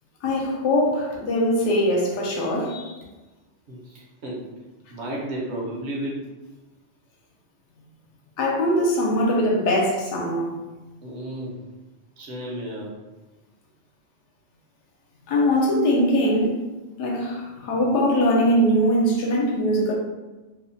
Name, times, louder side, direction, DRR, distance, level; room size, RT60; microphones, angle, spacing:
voice 1, 0.2-2.9 8.4-10.6 15.3-16.6 17.0-19.9, equal, 75° left, 0.9 m, -21 dB
voice 2, 3.7-4.4 4.9-6.2 11.0-11.6 12.2-12.9, right 1 dB, 70° right, 1.0 m, -32 dB
2.7 x 2.0 x 2.6 m
omnidirectional pair, 1.2 m